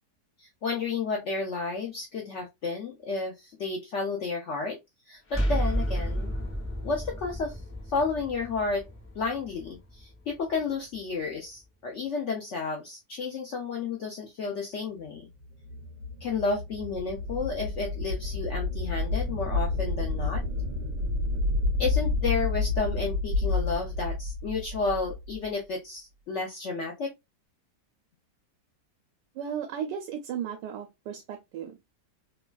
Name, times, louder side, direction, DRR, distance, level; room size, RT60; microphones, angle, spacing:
voice 1, 0.4-4.8 5.1-6.3 6.8-7.6 7.9-8.8 9.1-15.3 16.2-20.4 21.8-27.1, left 4 dB, 75° left, 0.6 m, -32 dB
sound 1, 5.3-11.0, equal, 10° left, 0.6 m, -32 dB
sound 2, 15.3-25.5, left 3 dB, 55° right, 1.3 m, -30 dB
voice 2, 29.3-31.8, right 8 dB, 80° right, 1.2 m, -35 dB
3.1 x 2.2 x 2.2 m
omnidirectional pair, 1.8 m